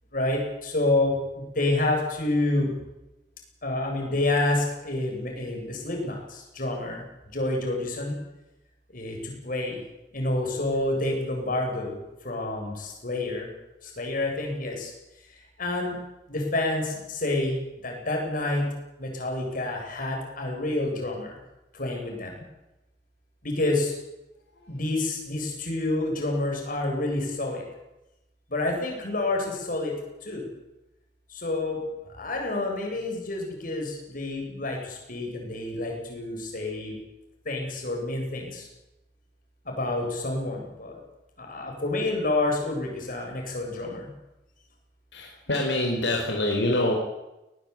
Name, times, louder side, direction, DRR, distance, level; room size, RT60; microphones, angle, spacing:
voice 1, 0.1-2.7 3.6-7.0 7.3-8.2 8.9-9.8 10.1-13.5 13.8-14.9 15.6-16.0 16.3-17.6 17.8-18.7 19.0-21.4 21.7-22.4 23.4-23.9 24.7-27.6 28.5-29.9 30.2-30.4 31.3-31.8 32.1-37.0 37.4-38.7 39.6-40.9 41.4-44.1, left 2 dB, 50° left, 1 dB, 8.0 m, -28 dB
voice 2, 45.1-46.9, left 1 dB, 80° left, 1 dB, 4.5 m, -26 dB
20.0 x 19.0 x 8.8 m, 0.96 s
head